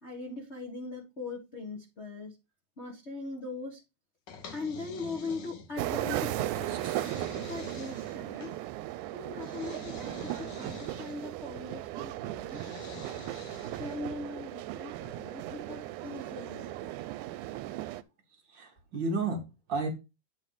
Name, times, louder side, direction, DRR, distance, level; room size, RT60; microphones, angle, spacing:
voice 1, 0.0-2.3 2.8-3.8 4.5-6.8 7.5-8.5 9.1-9.9 10.2-12.6 13.8-16.9, left 3 dB, 35° left, 1.1 m, -40 dB
sound 1, 4.3-5.9 6.5-8.6 9.4-11.3 12.5-14.1, left 5 dB, 70° left, 1.0 m, -47 dB
sound 2, 5.8-18.0, right 15 dB, 85° right, 2.0 m, -37 dB
voice 2, 6.7-7.0 18.3-19.9, right 3 dB, 50° right, 1.4 m, -33 dB
9.3 x 3.3 x 5.5 m
omnidirectional pair, 3.5 m